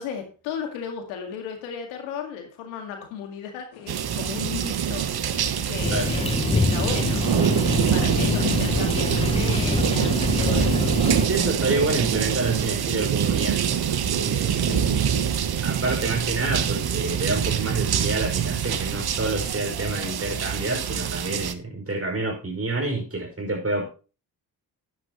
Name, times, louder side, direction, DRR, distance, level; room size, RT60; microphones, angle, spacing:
voice 1, 0.0-7.2 7.5-10.9 14.6-15.3, left 7 dB, 90° left, 4 dB, 2.1 m, -35 dB
sound 1, 3.7-18.9, left 7 dB, 70° left, 2.4 m, -41 dB
sound 2, 3.9-21.5, right 9 dB, 55° right, 1.1 m, -25 dB
sound 3, 5.8-11.3, left 3 dB, 15° left, 0.6 m, -26 dB
voice 2, 11.2-13.6 14.2-14.8 15.6-23.9, right 2 dB, 30° right, 2 dB, 5.7 m, -28 dB
11.0 x 10.5 x 3.0 m, 0.35 s
hypercardioid pair, 45°, 47 cm